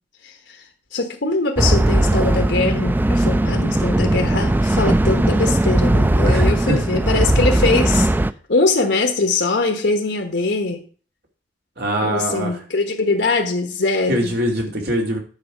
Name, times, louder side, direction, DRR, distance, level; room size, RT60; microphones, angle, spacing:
voice 1, 0.2-0.6 0.9-8.1 8.5-10.8 12.0-14.3, left 3 dB, 75° left, 1.2 m, -22 dB
sound 1, 1.6-8.3, right 1 dB, 10° right, 0.3 m, -18 dB
voice 2, 6.2-6.8 11.8-12.5 14.1-15.2, equal, 60° right, 2.5 m, -22 dB
9.8 x 5.9 x 5.1 m
head